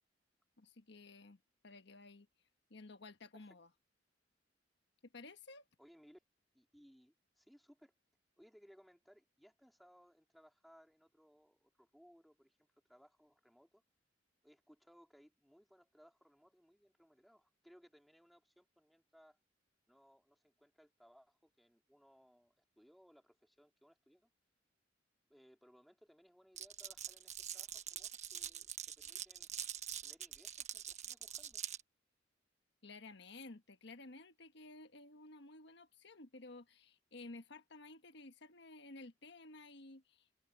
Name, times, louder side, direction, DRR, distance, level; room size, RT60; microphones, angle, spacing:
voice 1, 0.6-2.3 2.7-3.7 5.1-5.6 32.8-40.5, left 2 dB, 65° left, 1.4 m, -54 dB
voice 2, 5.8-6.2 6.5-8.0 8.4-12.6 12.9-13.8 14.4-19.4 19.9-24.3 25.3-29.5 30.0-31.6, equal, ahead, 2.9 m, -65 dB
Glass, 26.6-31.8, right 9 dB, 40° right, 1.1 m, -45 dB
head